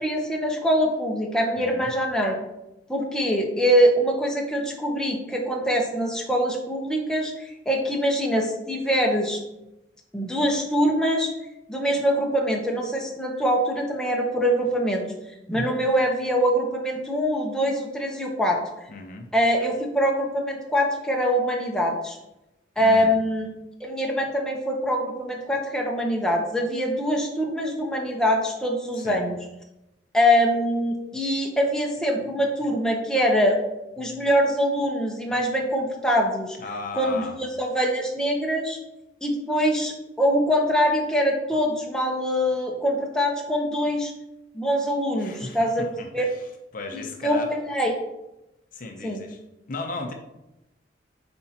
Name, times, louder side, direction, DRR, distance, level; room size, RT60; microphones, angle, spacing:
voice 1, 0.0-2.3 2.9-9.4 10.1-11.3 11.7-15.1 15.5-18.9 19.3-22.2 22.8-23.5 23.8-29.4 30.1-33.6 34.0-36.6 36.9-37.3 37.6-38.8 39.2-44.1 44.5-45.9 46.1-46.3 46.9-48.0 49.0-49.2, equal, 5° left, -1 dB, 0.8 m, -23 dB
voice 2, 1.6-1.9 18.9-19.3 22.8-23.2 28.9-29.2 36.6-37.4 45.2-46.5 46.7-47.5 48.7-49.4 49.7-50.1, left 3 dB, 45° left, 3 dB, 0.6 m, -36 dB
7.6 x 4.3 x 2.9 m, 0.94 s
head